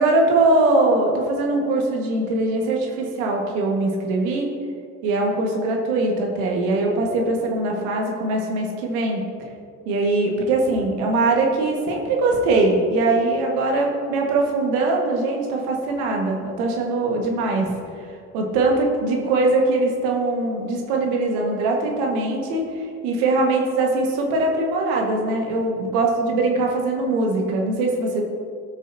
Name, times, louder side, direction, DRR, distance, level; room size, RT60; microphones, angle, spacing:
voice 1, 0.0-4.5 5.0-9.2 9.8-17.7 18.0-28.2, right 2 dB, 80° right, 0 dB, 1.6 m, -21 dB
17.0 x 6.3 x 2.7 m, 2.3 s
hypercardioid pair, 55°, 43 cm